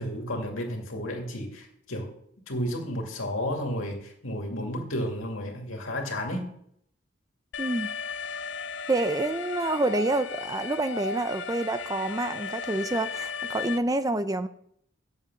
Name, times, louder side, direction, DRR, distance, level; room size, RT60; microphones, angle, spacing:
voice 1, 0.0-2.1 2.5-6.5, equal, 90° left, 2 dB, 2.3 m, -32 dB
Alarm, 7.5-13.8, left 5 dB, 60° left, 0.5 m, -35 dB
voice 2, 7.6-7.9 8.9-14.5, right 2 dB, 20° right, 11 dB, 0.4 m, -27 dB
8.6 x 6.9 x 6.1 m, 0.69 s
head